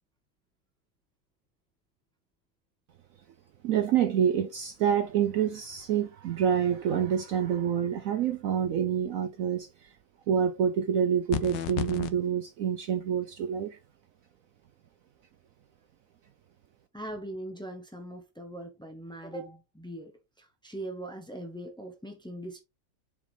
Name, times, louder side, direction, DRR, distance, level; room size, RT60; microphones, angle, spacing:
voice 1, 3.6-9.7 10.3-13.8, right 8 dB, 75° right, 0.7 m, -27 dB
sound 1, 11.3-12.1, left 12 dB, 75° left, 1.5 m, -32 dB
voice 2, 16.9-20.1 20.4-22.6, right 1 dB, 5° left, 0.4 m, -40 dB
7.3 x 5.0 x 3.3 m
omnidirectional pair, 2.0 m